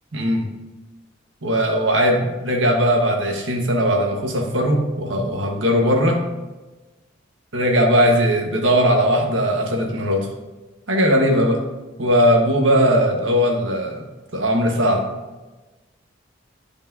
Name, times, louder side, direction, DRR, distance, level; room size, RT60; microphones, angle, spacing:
voice 1, 0.1-0.5 1.4-6.2 7.5-10.3 10.9-11.6 12.0-14.0 14.3-15.1, equal, 75° right, 1 dB, 1.3 m, -19 dB
11.0 x 5.2 x 2.7 m, 1.1 s
head